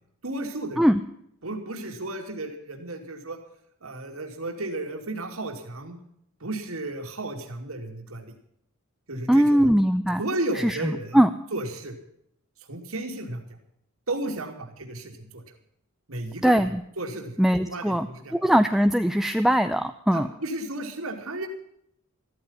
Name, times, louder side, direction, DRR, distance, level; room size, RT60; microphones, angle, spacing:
voice 1, 0.2-0.8 1.4-3.4 3.8-6.0 6.4-8.3 9.1-9.7 10.2-11.2 11.5-11.9 12.7-13.4 14.1-15.4 16.1-16.6 17.0-17.3 17.6-18.3 20.1-21.5, right 2 dB, 70° right, 3 dB, 2.8 m, -33 dB
voice 2, 9.3-10.2 10.5-11.3 16.4-16.8 17.4-20.3, equal, ahead, 8 dB, 0.5 m, -21 dB
14.0 x 14.0 x 5.6 m, 0.73 s
head